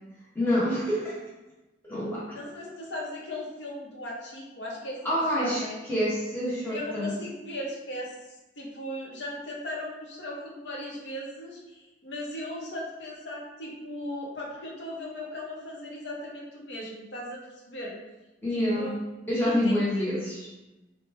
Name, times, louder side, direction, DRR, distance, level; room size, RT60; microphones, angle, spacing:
voice 1, 0.3-1.2 1.8-2.4 5.0-5.6 5.9-7.1 18.4-19.0 19.3-20.5, left 1 dB, 10° left, -7 dB, 0.7 m, -27 dB
voice 2, 2.3-5.8 6.7-8.2 8.6-17.4 17.7-18.0 18.5-19.0 19.4-20.0, left 1 dB, 65° left, -3 dB, 0.7 m, -37 dB
3.0 x 2.1 x 3.2 m, 1.0 s
head